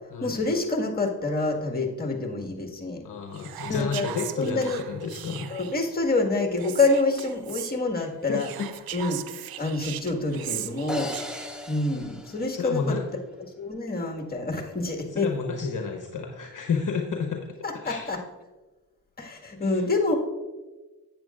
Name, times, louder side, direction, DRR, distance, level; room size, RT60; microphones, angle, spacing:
voice 1, 0.2-3.0 3.6-4.1 4.4-4.8 5.5-8.5 8.9-9.2 9.6-11.1 11.7-13.0 13.6-15.3 17.6-18.2 19.2-20.1, left 3 dB, 20° left, 1 dB, 1.8 m, -27 dB
voice 2, 3.0-5.5 8.3-8.7 12.5-13.0 15.1-17.4 17.8-18.1 19.6-19.8, left 5 dB, 45° left, 3 dB, 1.1 m, -31 dB
Whispering, 3.3-5.9 6.6-7.7 8.4-11.6, right 12 dB, 60° right, 0.6 m, -38 dB
sound 1, 10.9-13.2, equal, ahead, 1.1 m, -38 dB
10.5 x 8.5 x 2.5 m, 1.2 s
supercardioid pair, 60°, 42 cm